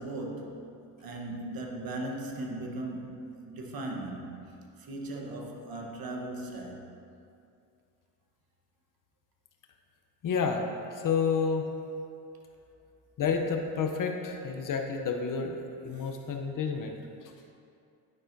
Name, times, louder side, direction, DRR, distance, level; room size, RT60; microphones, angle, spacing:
voice 1, 0.0-6.9 16.0-16.1, right 2 dB, 50° right, 1 dB, 1.1 m, -38 dB
voice 2, 10.2-11.6 13.2-17.5, left 5 dB, 45° left, 4 dB, 0.7 m, -30 dB
9.7 x 5.5 x 2.6 m, 2.5 s
supercardioid pair, 75°, 47 cm